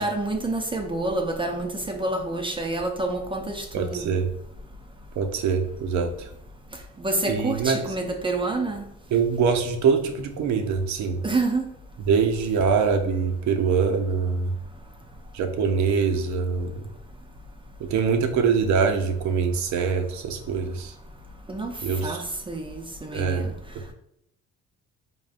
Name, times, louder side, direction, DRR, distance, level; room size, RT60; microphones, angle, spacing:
voice 1, 0.0-4.1 7.0-8.8 11.2-11.6 21.5-21.7 22.0-22.2 22.5-23.5, right 2 dB, 20° right, 4 dB, 0.4 m, -28 dB
voice 2, 3.7-4.3 5.2-6.3 7.3-7.8 9.1-11.2 12.1-14.5 15.3-16.8 17.8-20.9 21.8-22.2 23.1-23.5, right 5 dB, 70° right, 6 dB, 0.5 m, -24 dB
3.6 x 2.1 x 2.4 m, 0.74 s
cardioid pair, 90°, 30 cm